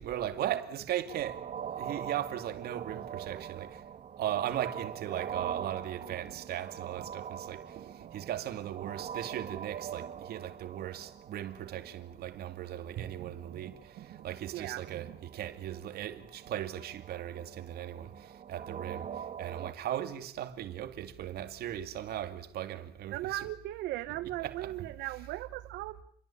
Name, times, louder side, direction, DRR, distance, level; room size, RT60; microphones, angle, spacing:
voice 1, 0.0-1.5 1.8-3.8 4.2-23.5 24.2-25.2, right 11 dB, 70° right, 2.4 m, -38 dB
sound 1, 1.1-19.7, right 8 dB, 45° right, 2.2 m, -43 dB
voice 2, 23.1-26.0, right 15 dB, 85° right, 1.1 m, -37 dB
28.5 x 23.0 x 8.6 m
cardioid pair, 110°, 17 cm